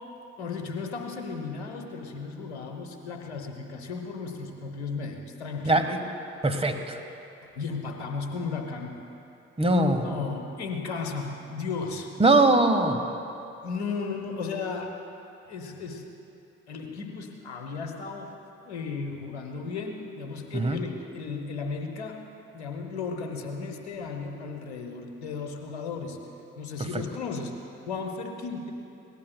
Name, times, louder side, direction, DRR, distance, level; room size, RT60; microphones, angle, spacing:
voice 1, 0.4-5.8 7.5-8.9 10.0-12.1 13.6-14.9 15.5-16.1 16.7-18.3 18.6-22.2 22.5-26.2 26.6-28.7, left 4 dB, 85° left, 4 dB, 1.0 m, -35 dB
voice 2, 5.6-6.0 6.4-7.0 9.6-10.1 12.2-13.0 20.5-20.8, right 2 dB, 20° right, 6 dB, 1.4 m, -21 dB
22.0 x 18.0 x 2.3 m, 2.8 s
figure-of-eight pair, 40°, 32 cm